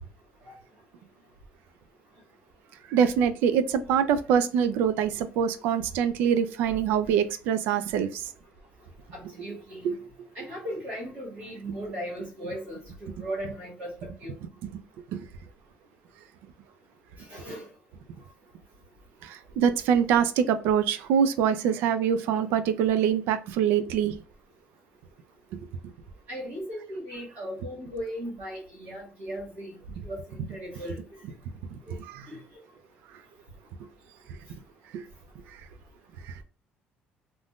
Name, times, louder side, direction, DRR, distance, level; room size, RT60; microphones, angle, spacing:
voice 1, 2.9-8.3 9.8-10.0 15.1-15.3 19.2-24.1 25.5-25.6 31.7-32.3 34.9-35.0 36.3-36.4, right 8 dB, 85° right, 0.4 m, -24 dB
voice 2, 9.1-9.9 10.3-13.9 14.2-14.3 17.3-17.6 26.3-29.7 30.0-31.0 31.9-32.0 32.3-32.4, equal, 55° right, 1.6 m, -37 dB
3.5 x 2.5 x 2.2 m
cardioid pair, 165°, 3 cm